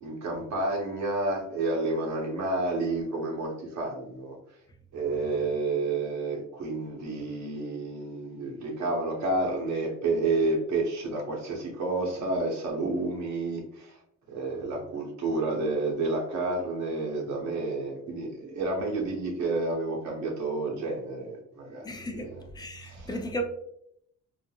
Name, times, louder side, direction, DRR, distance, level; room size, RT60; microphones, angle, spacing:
voice 1, 0.0-4.4 4.9-14.0 14.3-22.4 22.8-23.1, right 2 dB, 65° right, 0.7 m, -30 dB
voice 2, 21.8-22.3 22.5-23.4, equal, 15° left, 0.4 m, -34 dB
3.2 x 2.0 x 2.2 m
cardioid pair, 90°, 30 cm